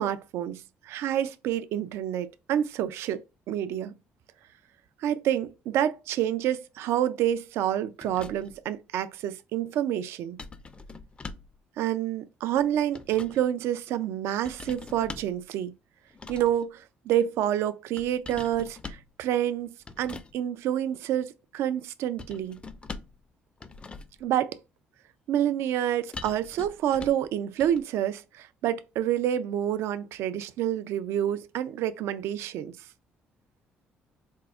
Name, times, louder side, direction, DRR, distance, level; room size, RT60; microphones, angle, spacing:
voice 1, 0.0-3.9 5.0-10.4 11.8-15.7 16.3-22.6 24.2-24.6 25.3-32.7, right 11 dB, 75° right, 0.3 m, -28 dB
sound 1, 8.0-8.6 10.4-11.6 12.6-13.4 14.4-15.4 16.1-16.6 18.0-19.1 19.9-20.3 22.2-23.2 23.6-24.2 26.1-27.3 27.6-27.8, left 4 dB, 25° left, 0.4 m, -43 dB
4.4 x 2.0 x 2.3 m
supercardioid pair, 65°, 4 cm